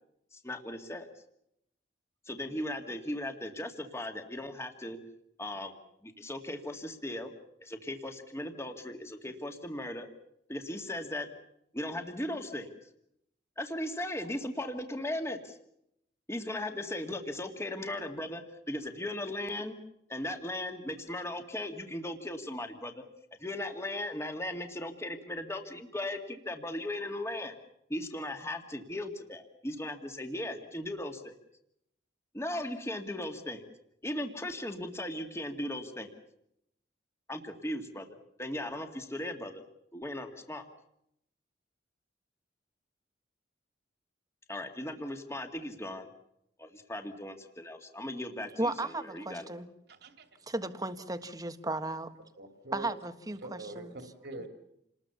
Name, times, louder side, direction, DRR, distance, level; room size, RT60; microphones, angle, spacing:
voice 1, 0.3-1.1 2.3-5.0 5.4-7.3 7.6-10.1 10.5-11.3 11.7-12.7 13.6-15.6 16.3-19.8 20.1-23.0 23.4-27.5 27.9-31.4 32.3-33.7 34.0-36.2 37.3-39.6 39.9-40.6 44.5-46.1 46.6-49.5, left 1 dB, 15° left, 2.1 m, -37 dB
voice 2, 48.6-49.7 50.5-52.1 52.7-53.9, right 2 dB, 20° right, 1.4 m, -35 dB
voice 3, 49.9-50.3 52.4-52.9 53.4-54.5, right 2 dB, 60° right, 2.7 m, -44 dB
28.5 x 20.5 x 7.1 m
head